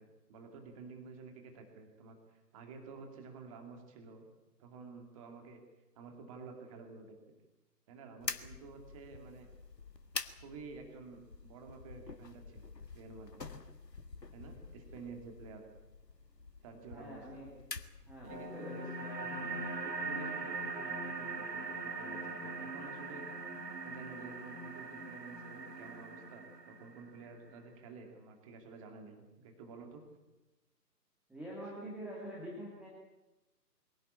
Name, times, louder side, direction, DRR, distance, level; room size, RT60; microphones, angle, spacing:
voice 1, 0.0-4.3 4.6-5.6 5.9-7.1 7.9-9.5 10.4-13.5 14.3-15.6 16.6-17.2 18.2-18.8 19.2-21.6 22.0-23.3 23.8-30.0, right 4 dB, 20° right, 4 dB, 2.5 m, -51 dB
sound 1, 8.2-18.5, left 4 dB, 75° left, 1.7 m, -47 dB
voice 2, 16.9-17.5 18.1-19.2 19.5-19.6 31.3-32.9, right 1 dB, ahead, -6 dB, 1.8 m, -46 dB
sound 2, 18.3-27.3, right 3 dB, 75° right, 3.3 m, -41 dB
23.0 x 17.0 x 8.5 m, 1.0 s
figure-of-eight pair, 140°, 50 cm